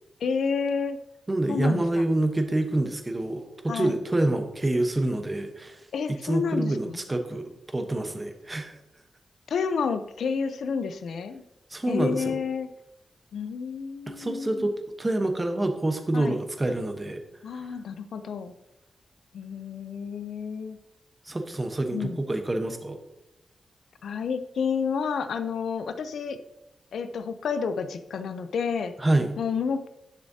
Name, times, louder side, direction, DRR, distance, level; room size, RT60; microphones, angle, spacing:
voice 1, 0.2-1.0 1.5-2.1 3.7-4.0 5.9-7.0 9.5-11.4 11.9-12.7 13.3-14.7 16.1-16.4 17.4-18.5 19.3-20.8 21.9-22.2 24.0-26.4 26.9-28.9 29.4-29.9, left 6 dB, 85° left, 10 dB, 0.5 m, -30 dB
voice 2, 1.3-5.8 6.1-8.8 11.7-12.4 14.1-17.2 21.3-23.0 29.0-29.3, right 1 dB, 20° right, 6 dB, 1.0 m, -27 dB
10.5 x 6.5 x 2.8 m, 0.89 s
cardioid pair, 95°, 0 cm